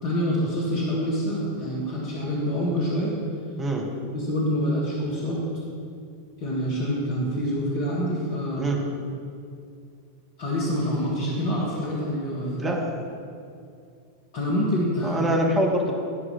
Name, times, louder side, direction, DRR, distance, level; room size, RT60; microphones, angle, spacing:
voice 1, 0.0-3.2 4.1-5.4 6.4-8.7 10.4-12.6 14.3-15.2, equal, 45° left, -4 dB, 1.6 m, -26 dB
voice 2, 15.0-15.9, right 1 dB, 20° right, 0 dB, 1.4 m, -24 dB
11.0 x 4.7 x 5.8 m, 2.4 s
figure-of-eight pair, 90°, 0 cm